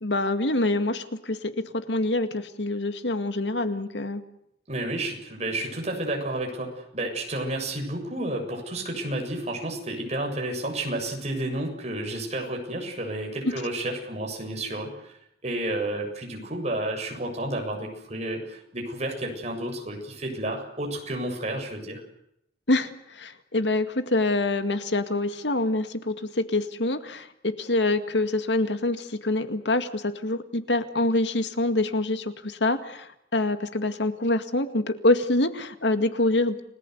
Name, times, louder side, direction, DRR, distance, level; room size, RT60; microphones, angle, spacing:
voice 1, 0.0-4.2 22.7-36.6, left 2 dB, 85° left, 9 dB, 2.0 m, -26 dB
voice 2, 4.7-15.1 15.4-22.0, right 1 dB, 40° right, 2 dB, 7.2 m, -31 dB
30.0 x 19.0 x 8.1 m, 0.77 s
head